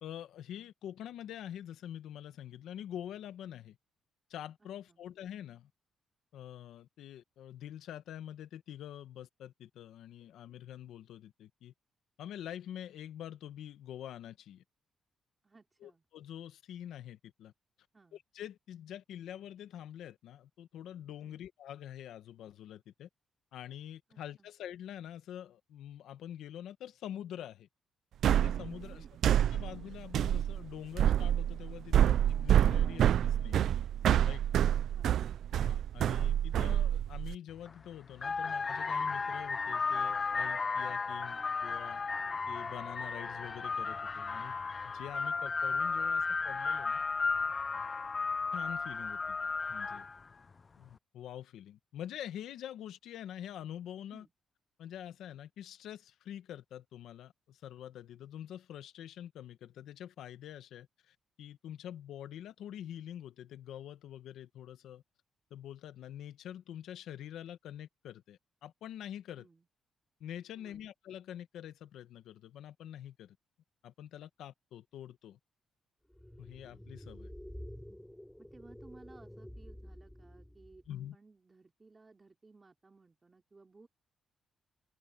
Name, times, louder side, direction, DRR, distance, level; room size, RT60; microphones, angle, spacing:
voice 1, 0.0-3.8 4.3-5.7 6.3-11.7 12.2-14.6 15.8-17.5 18.1-23.1 23.5-27.7 28.2-29.0 29.3-33.7 34.2-34.4 35.6-42.0 42.5-44.6 44.8-47.0 48.5-49.4 49.7-50.1 50.8-54.3 54.8-65.0 65.5-69.4 70.2-73.4 73.8-75.4 76.4-77.3 80.9-81.1, left 10 dB, 85° left, 1.4 m, -46 dB
voice 2, 4.6-5.0 15.4-16.1 17.9-18.2 21.2-21.4 24.1-24.5 28.8-29.3 34.5-35.4 54.1-54.3 69.4-69.7 70.5-70.9 78.4-83.9, right 3 dB, 20° right, 4.8 m, -60 dB
sound 1, 28.2-37.4, right 10 dB, 70° right, 0.4 m, -27 dB
sound 2, 37.5-37.7 38.1-50.2, left 4 dB, 30° left, 0.6 m, -34 dB
sound 3, 76.1-80.9, equal, 5° left, 6.5 m, -49 dB
open air
cardioid pair, 140°, 0 cm